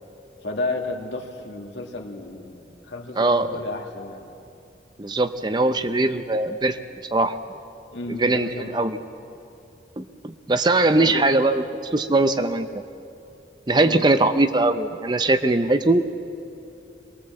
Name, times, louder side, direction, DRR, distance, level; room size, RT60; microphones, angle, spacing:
voice 1, 0.4-4.3 7.9-9.0 11.0-11.3 13.7-14.0, left 2 dB, 85° left, 1 dB, 2.2 m, -32 dB
voice 2, 3.2-3.6 5.0-6.8 7.1-7.4 8.1-9.0 10.0-11.6 11.9-12.7 13.7-16.1, right 2 dB, 25° right, 9 dB, 0.6 m, -21 dB
23.0 x 19.5 x 7.5 m, 2.7 s
head